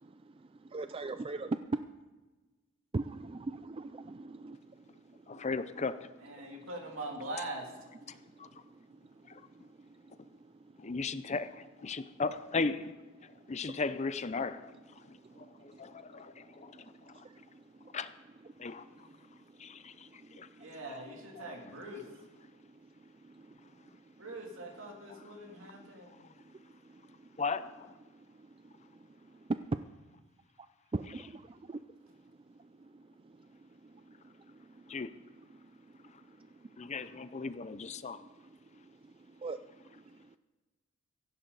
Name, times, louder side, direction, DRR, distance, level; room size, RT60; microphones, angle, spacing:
voice 1, 0.0-1.6 2.9-5.5 6.4-6.6 8.1-10.9 11.9-12.1 13.2-13.8 15.0-18.0 18.5-20.7 22.4-24.1 25.7-27.4 28.1-29.6 30.9-35.0 35.5-40.4, right 3 dB, 25° right, 10 dB, 0.4 m, -46 dB
voice 2, 5.3-6.1 8.1-8.5 9.3-9.4 10.8-12.9 13.5-14.7 15.1-17.2 17.9-18.1 18.6-18.8 19.6-20.5 27.4-27.9 34.9-35.1 36.8-38.2, left 4 dB, 30° left, 13 dB, 0.6 m, -37 dB
voice 3, 6.2-7.7 20.6-22.0 24.2-26.3, right 1 dB, 65° right, 1 dB, 3.0 m, -42 dB
16.5 x 15.5 x 4.0 m, 1.2 s
head